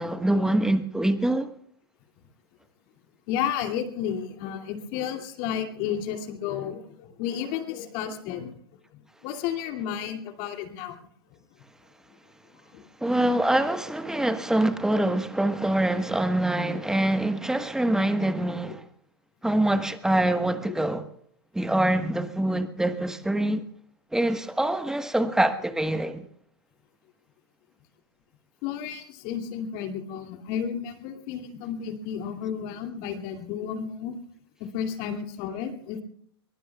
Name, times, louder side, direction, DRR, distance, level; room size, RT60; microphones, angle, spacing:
voice 1, 0.0-1.5 13.0-18.8 19.4-21.1 21.5-23.6 24.1-26.2, right 1 dB, 5° right, 1.3 m, -25 dB
voice 2, 3.3-8.5 9.2-11.0 12.7-12.8 28.6-34.2 34.7-36.0, left 8 dB, 55° left, 2.6 m, -32 dB
23.0 x 23.0 x 2.4 m
hypercardioid pair, 105°, 14 cm